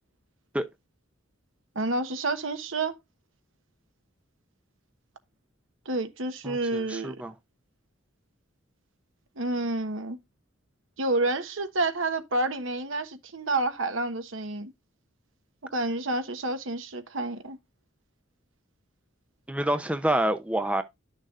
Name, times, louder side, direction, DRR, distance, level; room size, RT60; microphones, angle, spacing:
voice 1, 1.7-2.9 5.8-7.2 9.4-10.2 11.0-14.7 15.7-17.6, right 2 dB, 70° right, 1.2 m, -29 dB
voice 2, 6.4-7.3 19.5-20.8, right 1 dB, 5° right, 0.6 m, -27 dB
11.0 x 6.6 x 2.5 m
head